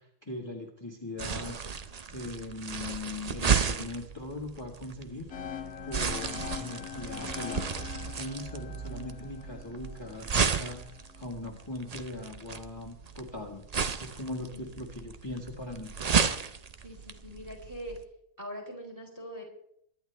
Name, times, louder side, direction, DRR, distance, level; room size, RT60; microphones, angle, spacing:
voice 1, 0.0-1.6 2.1-5.3 5.8-7.7 8.1-10.8 11.1-13.7 13.9-16.0, left 2 dB, 20° left, 0 dB, 1.6 m, -40 dB
sound 1, 1.2-18.0, right 6 dB, 40° right, 0.5 m, -33 dB
sound 2, 5.3-11.2, left 8 dB, 70° left, 1.4 m, -42 dB
voice 2, 16.8-18.0 18.4-19.4, equal, 10° right, 1 dB, 4.1 m, -42 dB
23.0 x 10.5 x 3.4 m, 0.72 s
omnidirectional pair, 1.6 m